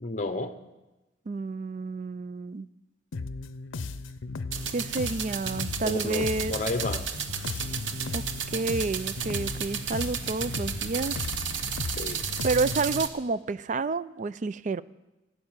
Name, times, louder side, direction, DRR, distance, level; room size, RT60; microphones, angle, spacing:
voice 1, 0.0-0.5 5.8-7.0 12.0-12.2, left 2 dB, 40° left, 9 dB, 0.7 m, -31 dB
voice 2, 1.3-2.7 4.7-6.5 8.1-8.2 8.5-11.2 12.4-14.8, right 3 dB, 40° right, 17 dB, 0.4 m, -29 dB
sound 1, 3.1-13.0, left 3 dB, 90° left, 0.6 m, -36 dB
sound 2, 4.5-13.1, right 7 dB, 75° right, 0.9 m, -33 dB
15.0 x 6.7 x 8.9 m, 1.1 s
head